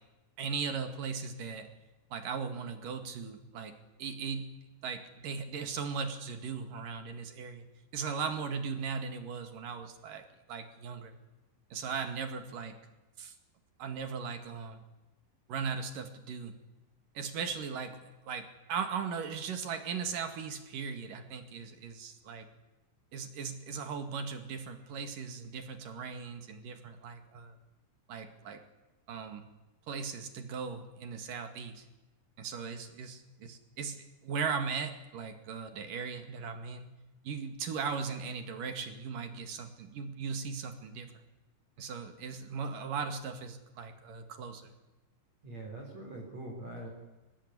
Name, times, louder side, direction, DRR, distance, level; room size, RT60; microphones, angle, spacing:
voice 1, 0.4-1.7 2.1-4.5 4.8-7.6 7.9-11.1 11.7-12.8 13.2-13.3 13.8-14.8 15.5-16.5 17.1-22.5 23.1-27.6 28.1-28.6 29.1-29.4 29.9-31.9 32.4-36.9 37.2-41.2 41.8-44.7, right 5 dB, 55° right, 8 dB, 3.2 m, -38 dB
voice 2, 45.4-46.9, right 2 dB, 35° right, 0 dB, 4.8 m, -43 dB
25.0 x 19.0 x 9.8 m, 1.1 s
omnidirectional pair, 5.4 m